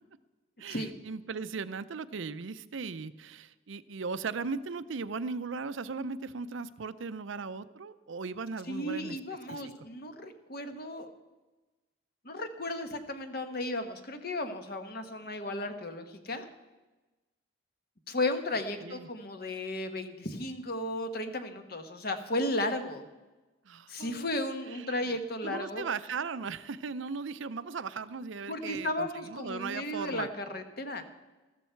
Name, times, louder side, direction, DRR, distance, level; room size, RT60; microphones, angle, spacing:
voice 1, 0.6-9.2 9.5-9.7 18.8-19.1 23.6-24.3 24.7-30.3, right 4 dB, 70° right, 14 dB, 0.5 m, -38 dB
voice 2, 8.7-11.1 12.2-16.5 18.1-23.1 23.9-25.9 28.5-31.0, left 1 dB, 50° left, 8 dB, 1.2 m, -34 dB
14.0 x 13.5 x 4.6 m, 1.1 s
head